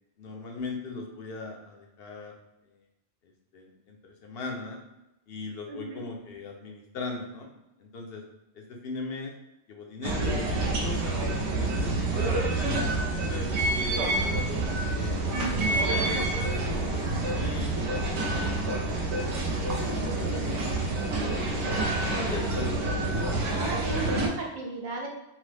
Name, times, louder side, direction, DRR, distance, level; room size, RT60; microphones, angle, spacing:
voice 1, 0.2-2.3 3.5-4.8 5.3-7.5 7.8-8.2 8.5-9.3 9.7-11.2 11.5-14.4 14.9-18.0 18.4-19.3 19.6-20.9 22.0-23.3 24.0-24.2, left 3 dB, 70° left, 1 dB, 0.8 m, -40 dB
voice 2, 5.7-6.0 23.5-25.1, right 3 dB, 50° right, -1 dB, 0.7 m, -36 dB
sound 1, 10.0-24.3, right 2 dB, 80° right, 0.9 m, -28 dB
2.9 x 2.0 x 3.1 m, 0.92 s
omnidirectional pair, 1.1 m